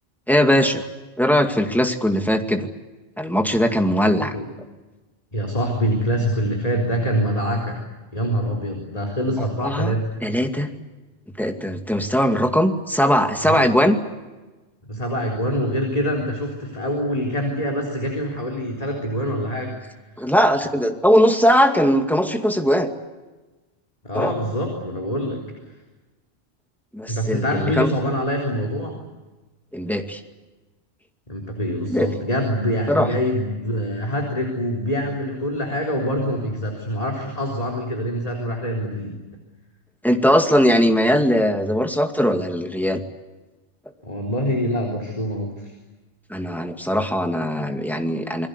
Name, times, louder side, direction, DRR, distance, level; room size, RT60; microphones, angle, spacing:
voice 1, 0.3-0.8 1.2-2.7 3.2-4.3 9.6-10.0 10.2-10.7 11.4-14.0 20.2-22.9 24.1-24.3 26.9-27.9 29.7-30.2 31.9-32.1 32.9-33.1 40.0-43.0 46.3-48.5, equal, ahead, 4 dB, 2.2 m, -20 dB
voice 2, 5.3-7.8 8.1-10.1 13.4-13.7 14.9-19.8 20.2-20.3 24.0-25.4 27.1-29.0 31.3-39.2 44.0-45.7, equal, 35° left, 2 dB, 4.0 m, -25 dB
28.5 x 21.5 x 8.2 m, 1.2 s
omnidirectional pair, 1.1 m